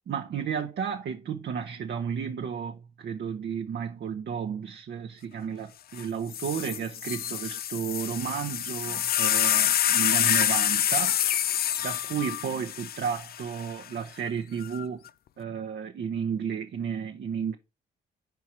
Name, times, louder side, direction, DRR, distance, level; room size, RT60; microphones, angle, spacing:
voice 1, 0.1-11.2 11.8-15.0 15.4-17.5, right 7 dB, 60° right, 0.9 m, -33 dB
sound 1, 6.0-6.1 6.3-13.7 14.6-15.1, left 11 dB, 50° left, 0.4 m, -27 dB
4.7 x 4.7 x 6.0 m
supercardioid pair, 60°, 20 cm